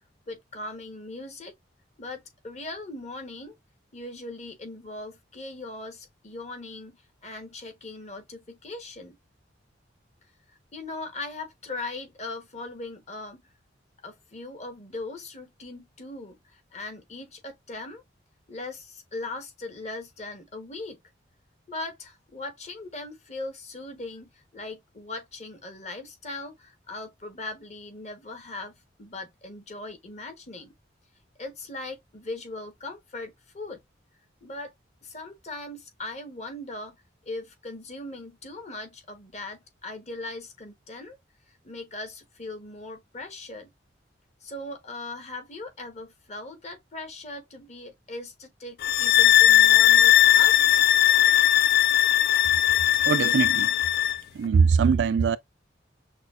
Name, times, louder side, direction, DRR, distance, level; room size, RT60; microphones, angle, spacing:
voice 1, 0.3-1.5 2.0-3.5 3.9-7.0 7.2-9.2 10.7-13.4 14.0-18.0 18.5-21.0 21.7-28.7 29.0-30.7 31.4-33.8 34.4-34.7 35.0-37.0 37.2-41.2 41.6-43.7 44.4-50.8, left 2 dB, 35° left, 1.0 m, -39 dB
sound 1, 48.8-54.2, left 12 dB, 55° left, 0.4 m, -19 dB
voice 2, 53.0-53.7 54.3-55.4, right 5 dB, 70° right, 0.3 m, -21 dB
6.0 x 2.3 x 2.4 m
head